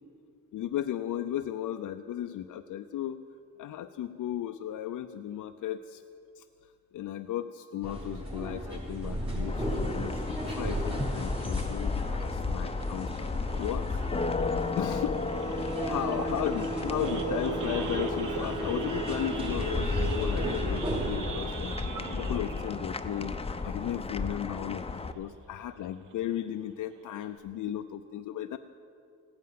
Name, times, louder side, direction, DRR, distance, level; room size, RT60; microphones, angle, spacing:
voice 1, 0.5-3.2 3.6-6.0 6.4-6.5 6.9-13.3 13.6-14.0 14.3-14.5 14.8-21.8 22.1-28.6, left 11 dB, 80° left, 7 dB, 0.5 m, -35 dB
sound 1, 7.8-21.1, equal, 15° right, 4.3 m, -35 dB
sound 2, 9.5-25.1, left 4 dB, 20° left, 0.6 m, -34 dB
Idling / Accelerating revving vroom / Sawing, 13.5-24.6 25.0-25.2 25.4-25.5 26.0-26.3 26.7-26.8 27.0-27.4, right 6 dB, 80° right, 1.2 m, -39 dB
15.5 x 9.4 x 7.7 m, 2.5 s
cardioid pair, 100°, 31 cm